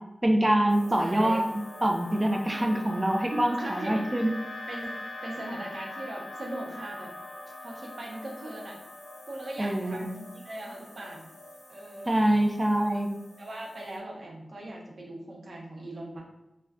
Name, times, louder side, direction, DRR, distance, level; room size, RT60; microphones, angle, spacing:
voice 1, 0.2-1.4 1.8-4.3 9.6-10.1 12.1-13.1, right 1 dB, 20° right, 2 dB, 0.4 m, -25 dB
sound 1, 0.7-14.0, left 1 dB, 55° left, 0.5 m, -43 dB
voice 2, 1.0-1.4 3.6-4.3 4.7-7.1 7.6-8.8 9.3-11.2 11.7-12.1 12.8-12.9 13.4-16.2, right 1 dB, 55° right, -2 dB, 0.7 m, -39 dB
2.4 x 2.2 x 3.4 m, 0.96 s
wide cardioid pair, 115°, 0 cm